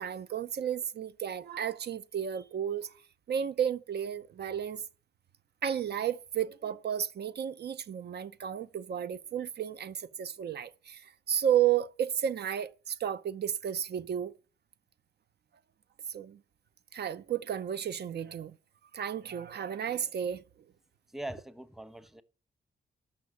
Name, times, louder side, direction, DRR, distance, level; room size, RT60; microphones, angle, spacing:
voice 1, 0.0-2.9 3.3-4.8 5.6-14.3 16.1-16.4 16.9-18.6 18.9-20.4, right 9 dB, 65° right, 0.7 m, -32 dB
voice 2, 21.1-22.2, right 1 dB, ahead, 0.9 m, -41 dB
13.0 x 6.0 x 8.2 m
cardioid pair, 95°, 18 cm